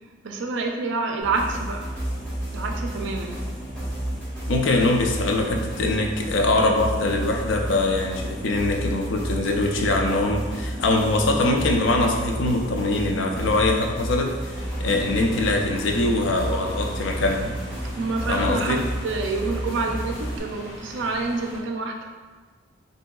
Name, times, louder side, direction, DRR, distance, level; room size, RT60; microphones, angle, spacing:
voice 1, 0.2-2.0 2.5-3.4 4.8-4.9 17.9-22.1, right 3 dB, 70° right, 2 dB, 0.4 m, -28 dB
sound 1, 1.2-20.4, right 1 dB, 5° left, 1.4 m, -31 dB
voice 2, 4.5-17.5 18.3-18.8, left 2 dB, 75° left, 2 dB, 0.4 m, -23 dB
sound 2, 14.5-21.6, equal, 20° left, 1.1 m, -41 dB
3.7 x 2.7 x 2.3 m, 1.4 s
head